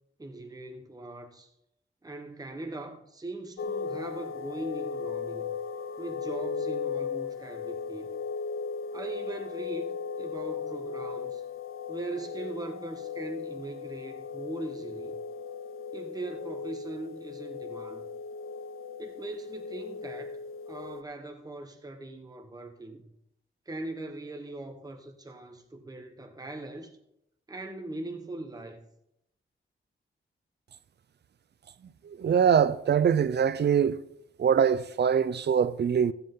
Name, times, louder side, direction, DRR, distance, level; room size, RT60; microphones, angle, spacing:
voice 1, 0.2-1.5 2.0-5.5 6.0-8.1 8.9-11.4 11.9-15.2 15.9-18.0 19.0-23.1 23.7-27.0 27.5-28.9, right 2 dB, 20° right, 1.1 m, -40 dB
sound 1, 3.6-21.0, left 6 dB, 80° left, 0.6 m, -37 dB
voice 2, 32.0-34.0 34.4-36.1, right 7 dB, 55° right, 0.5 m, -23 dB
14.5 x 7.9 x 3.8 m
wide cardioid pair, 95°, 21 cm